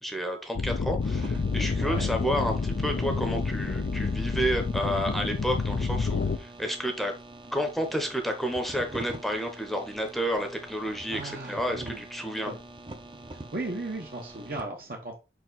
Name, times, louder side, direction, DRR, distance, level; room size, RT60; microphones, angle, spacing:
voice 1, 0.0-7.1 7.5-12.5, equal, ahead, 0.8 m, -30 dB
sound 1, 0.5-6.4, left 4 dB, 70° left, 0.5 m, -29 dB
sound 2, 1.0-14.6, right 2 dB, 30° right, 0.7 m, -45 dB
voice 2, 11.1-12.0 12.5-12.6 13.3-15.2, right 2 dB, 55° right, 1.0 m, -36 dB
5.5 x 4.6 x 4.0 m
head